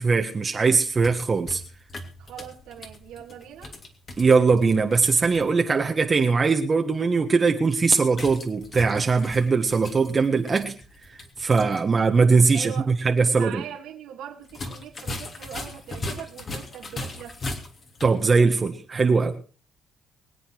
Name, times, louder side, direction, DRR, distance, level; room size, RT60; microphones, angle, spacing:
voice 1, 0.0-1.6 4.2-10.7 11.4-13.6 18.0-19.4, right 4 dB, 35° right, 1.5 m, -21 dB
sound 1, 0.8-5.5 8.1-11.8 12.1-12.2 14.4-18.2, left 2 dB, 45° left, 3.0 m, -38 dB
voice 2, 2.2-3.7 12.5-12.9 13.3-17.4, right 10 dB, 90° right, 2.6 m, -40 dB
23.5 x 8.5 x 4.7 m
cardioid pair, 90°, 0 cm